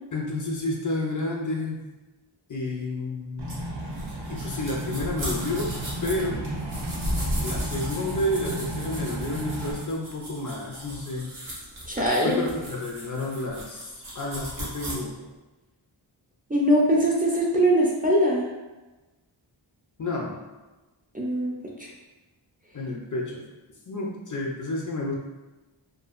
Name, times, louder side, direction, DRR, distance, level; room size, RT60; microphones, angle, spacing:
voice 1, 0.1-1.8 2.5-3.6 4.3-5.7 6.0-6.4 7.4-11.3 12.2-15.1 20.0-20.4 22.7-23.4 23.9-25.1, left 2 dB, 40° left, -1 dB, 0.5 m, -30 dB
sound 1, 3.4-9.7, right 1 dB, 55° right, 0.6 m, -33 dB
sound 2, 3.5-14.9, equal, 75° right, 1.0 m, -36 dB
voice 2, 11.9-12.4 16.5-18.5 21.1-21.5 21.8-21.9, equal, 20° right, -4 dB, 0.4 m, -22 dB
2.7 x 2.4 x 2.4 m, 1.1 s
wide cardioid pair, 55°, 48 cm